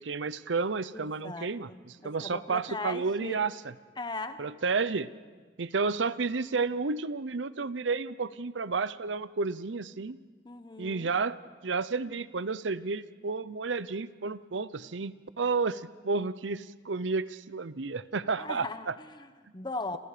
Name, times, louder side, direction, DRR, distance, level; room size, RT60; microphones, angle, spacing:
voice 1, 0.0-3.7 4.4-5.1 5.6-10.2 10.8-11.4 11.6-18.9, right 4 dB, 80° right, 16 dB, 0.7 m, -31 dB
voice 2, 0.9-3.5 4.0-4.4 10.4-11.1 18.4-20.0, left 2 dB, 25° left, 9 dB, 1.2 m, -39 dB
29.5 x 27.0 x 5.0 m, 1.4 s
head